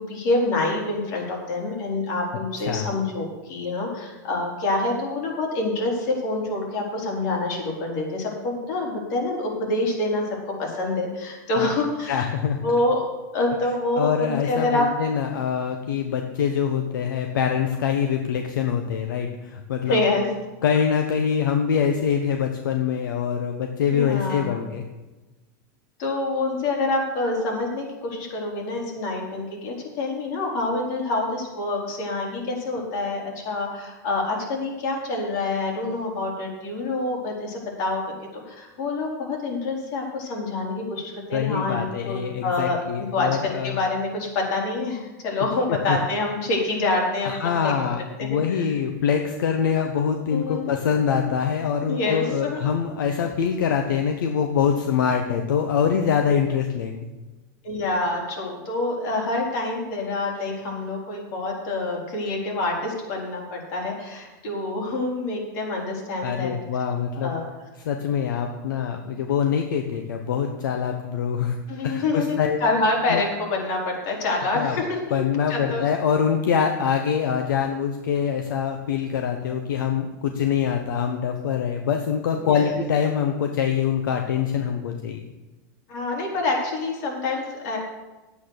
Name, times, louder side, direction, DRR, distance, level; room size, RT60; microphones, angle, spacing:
voice 1, 0.0-12.3 12.6-13.0 13.3-14.9 19.8-20.2 23.9-24.6 26.0-38.0 38.5-47.7 48.2-48.7 50.3-50.6 51.9-52.6 57.6-66.5 67.2-67.5 71.7-75.0 75.5-75.9 82.4-82.7 85.9-87.8, left 2 dB, 65° left, -1 dB, 4.0 m, -26 dB
voice 2, 12.1-12.6 14.0-20.0 20.6-24.8 41.3-43.8 45.7-46.0 47.2-57.0 66.2-67.3 67.8-72.6 73.1-73.2 74.5-74.8 75.1-85.2, left 7 dB, 90° left, 4 dB, 1.0 m, -24 dB
9.8 x 8.4 x 6.6 m, 1.1 s
supercardioid pair, 130°, 10 cm